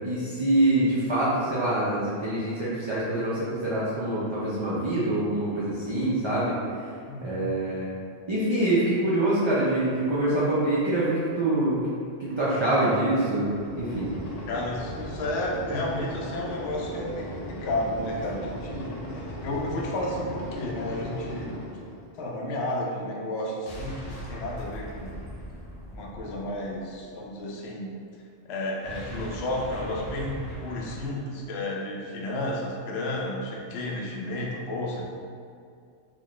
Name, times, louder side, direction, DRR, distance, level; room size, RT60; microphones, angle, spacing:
voice 1, 0.0-6.6 7.2-7.9 8.3-11.8 12.2-14.1, right 1 dB, 40° right, -9 dB, 0.4 m, -25 dB
voice 2, 7.1-7.5 14.5-21.6 22.1-25.3 25.9-27.9 28.4-35.0, left 1 dB, 65° left, -2 dB, 0.8 m, -32 dB
sound 1, 13.4-22.2 23.7-27.0 28.8-31.1, equal, 80° left, 1.2 m, -38 dB
4.2 x 2.3 x 3.0 m, 2.3 s
omnidirectional pair, 1.3 m